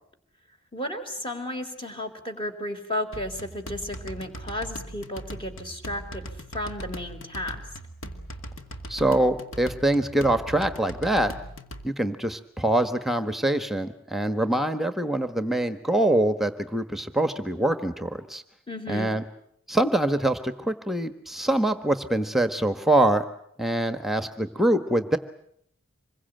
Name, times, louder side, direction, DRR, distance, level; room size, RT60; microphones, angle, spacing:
voice 1, 0.7-6.3 6.5-7.6 18.7-19.1, left 1 dB, 25° left, 7 dB, 3.9 m, -33 dB
sound 1, 3.1-11.9, equal, 75° left, 2.4 m, -40 dB
voice 2, 8.9-11.3 11.8-18.4 18.9-19.2 19.7-23.2 23.6-25.2, right 1 dB, ahead, 9 dB, 1.4 m, -24 dB
26.5 x 22.5 x 9.1 m, 0.69 s
head